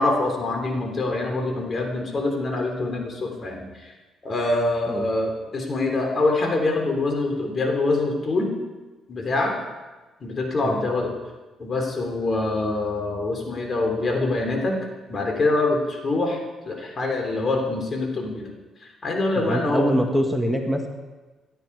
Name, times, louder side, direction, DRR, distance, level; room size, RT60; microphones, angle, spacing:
voice 1, 0.0-3.9 4.2-8.5 9.1-9.5 10.2-11.1 11.6-14.8 15.1-16.4 16.6-18.5 18.8-19.9, left 2 dB, 40° left, 2 dB, 3.5 m, -25 dB
voice 2, 19.3-20.9, equal, ahead, 3 dB, 1.7 m, -24 dB
18.5 x 12.0 x 4.8 m, 1.2 s
cardioid pair, 90°, 0 cm